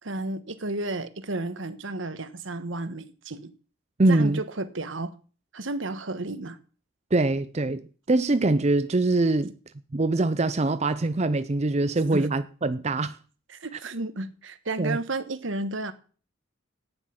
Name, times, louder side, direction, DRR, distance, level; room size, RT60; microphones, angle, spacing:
voice 1, 0.0-3.5 4.1-5.1 5.5-6.6 12.1-12.3 13.5-15.9, right 2 dB, 75° right, 1.3 m, -32 dB
voice 2, 4.0-4.4 7.1-7.8 8.1-9.5 9.9-13.2 14.8-15.0, right 2 dB, 35° right, 0.6 m, -23 dB
14.0 x 9.9 x 5.9 m
head